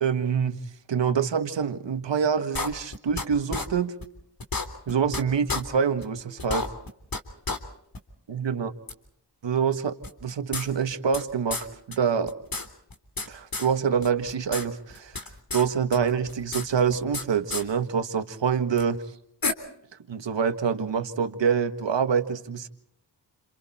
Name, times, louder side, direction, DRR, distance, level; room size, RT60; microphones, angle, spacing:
voice 1, 0.0-0.6 0.9-3.9 4.9-6.7 8.3-8.7 9.4-10.0 10.2-12.4 13.3-15.2 15.5-19.0 20.1-22.7, right 7 dB, 90° right, 8 dB, 1.7 m, -26 dB
sound 1, 2.5-3.2 3.5-3.6 4.0-4.1 4.4-5.2 5.5-5.6 6.0-6.1 6.4-7.2 7.4-7.6 7.9-8.0 8.9-9.0 10.0-11.2 11.5-11.6 11.9-12.0 12.3-13.3 13.5-13.7 14.0-14.6 14.9-15.6 15.9-17.2 17.5-17.6 18.8-18.9 19.4-19.5, left 3 dB, 55° left, 3.5 m, -30 dB
30.0 x 27.5 x 4.3 m, 0.71 s
cardioid pair, 50°, 43 cm